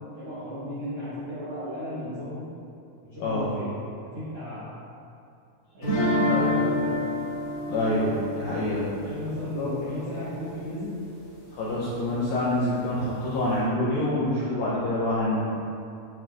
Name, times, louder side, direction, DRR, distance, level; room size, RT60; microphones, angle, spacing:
voice 1, 0.2-2.4 3.0-3.7 4.0-4.8 5.7-7.2 9.0-11.0, equal, 75° right, -13 dB, 1.4 m, -35 dB
voice 2, 3.2-3.5 6.3-6.5 7.7-8.9 9.5-9.8 11.5-15.4, left 1 dB, 80° left, -8 dB, 2.0 m, -26 dB
sound 1, 5.8-10.7, left 1 dB, 60° left, 1.2 m, -28 dB
7.3 x 2.9 x 2.4 m, 2.5 s
omnidirectional pair, 4.6 m